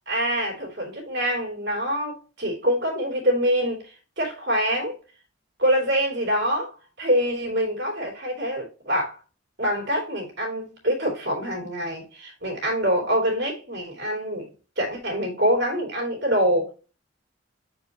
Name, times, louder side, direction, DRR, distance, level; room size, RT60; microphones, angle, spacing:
voice 1, 0.1-5.0 5.6-9.2 9.6-14.5 14.8-16.7, equal, 60° right, 2.9 m, -25 dB
6.9 x 4.7 x 2.8 m
head